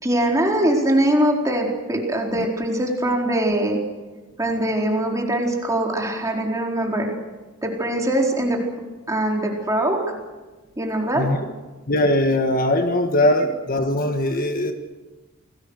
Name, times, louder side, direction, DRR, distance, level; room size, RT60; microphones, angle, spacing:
voice 1, 0.0-3.8 4.4-7.1 7.6-8.6 9.1-10.0 10.8-11.3, right 1 dB, 15° right, 0 dB, 4.4 m, -22 dB
voice 2, 11.1-11.5 11.9-14.7, left 1 dB, 45° left, 6 dB, 1.5 m, -21 dB
29.0 x 20.0 x 6.5 m, 1.2 s
head